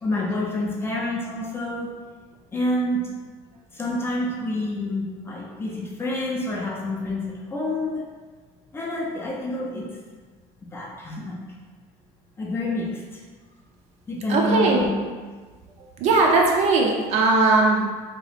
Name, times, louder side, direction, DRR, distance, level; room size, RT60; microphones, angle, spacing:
voice 1, 0.0-1.9 2.5-3.1 3.7-7.2 7.5-8.0 8.7-9.9 10.7-11.4 12.4-13.0 14.1-14.9, left 1 dB, 15° left, -3 dB, 0.4 m, -27 dB
voice 2, 14.3-14.8 15.8-17.9, right 3 dB, 50° right, 0 dB, 0.5 m, -19 dB
2.9 x 2.3 x 3.2 m, 1.5 s
cardioid pair, 150°, 14 cm